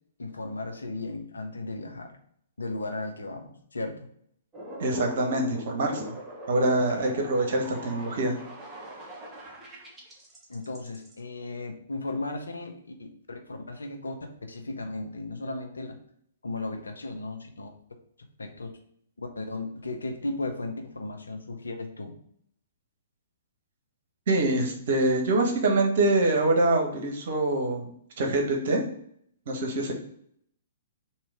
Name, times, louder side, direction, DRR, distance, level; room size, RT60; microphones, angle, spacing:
voice 1, 0.2-2.2 2.6-4.0 6.8-7.1 7.5-7.7 10.5-14.2 14.5-16.0 16.4-17.7 18.4-18.7 19.2-22.1, left 2 dB, 75° left, 4 dB, 0.7 m, -35 dB
sound 1, 4.5-11.2, right 1 dB, 10° right, 1.0 m, -42 dB
voice 2, 4.8-6.1 6.5-8.4 24.3-27.9 28.2-28.8 29.5-29.9, right 2 dB, 55° right, 2 dB, 1.1 m, -25 dB
3.7 x 3.0 x 4.5 m, 0.68 s
figure-of-eight pair, 115°, 0 cm